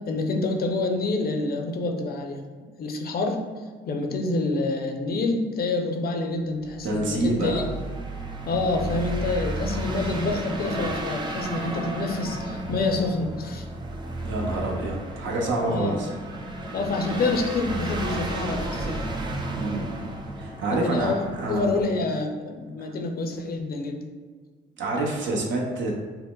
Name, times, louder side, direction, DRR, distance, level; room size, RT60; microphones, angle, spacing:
voice 1, 0.1-2.4 2.8-7.7 8.4-13.7 15.7-16.0 16.7-19.0 20.7-24.0, left 3 dB, 50° left, 3 dB, 0.5 m, -27 dB
sound 1, 6.6-21.8, right 1 dB, 20° right, 0.5 m, -33 dB
voice 2, 6.8-7.6 14.2-16.1 19.5-19.9 20.4-21.6 24.8-25.9, right 2 dB, 70° right, -1 dB, 0.8 m, -27 dB
5.5 x 2.1 x 2.3 m, 1.5 s
cardioid pair, 90°, 20 cm